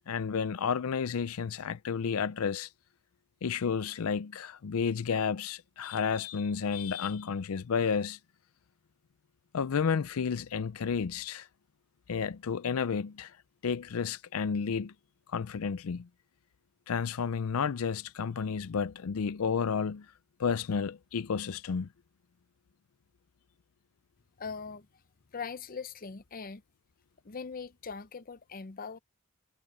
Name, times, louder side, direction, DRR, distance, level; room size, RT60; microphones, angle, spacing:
voice 1, 0.0-2.7 3.4-8.2 9.5-11.5 12.1-13.3 13.6-14.9 15.3-16.1 16.9-20.1 20.4-21.9, left 6 dB, 90° left, 0.5 m, -31 dB
voice 2, 24.4-24.9 25.3-26.6 27.2-29.0, left 5 dB, 40° left, 0.7 m, -41 dB
head